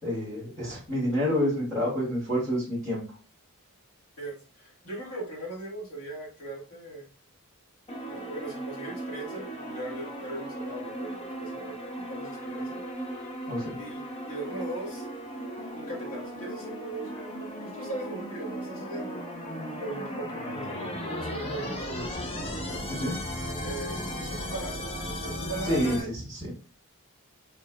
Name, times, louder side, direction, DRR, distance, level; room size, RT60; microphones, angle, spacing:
voice 1, 0.0-3.0 13.5-13.8 22.9-23.2 25.6-26.0 26.3-26.5, equal, 10° left, -12 dB, 2.0 m, -28 dB
voice 2, 4.2-7.1 8.0-12.8 13.8-15.0 15.7-19.2 19.8-22.3 23.6-24.8 25.2-26.1, right 2 dB, 75° left, -3 dB, 1.7 m, -39 dB
sound 1, 7.9-26.0, equal, 25° left, 0.6 m, -36 dB
4.5 x 3.2 x 2.3 m, 0.38 s
head